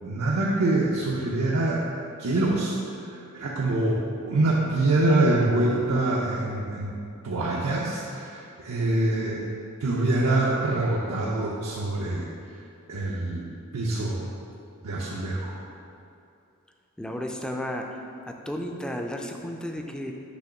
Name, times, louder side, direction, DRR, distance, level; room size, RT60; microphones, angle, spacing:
voice 1, 0.0-1.8 2.2-6.9 7.2-9.5 9.8-12.3 12.9-13.4 13.7-14.2 14.8-15.5, right 2 dB, 85° right, -4 dB, 0.6 m, -25 dB
voice 2, 17.0-18.0 18.3-20.1, equal, 5° left, 2 dB, 0.3 m, -33 dB
6.3 x 3.0 x 5.8 m, 2.6 s
head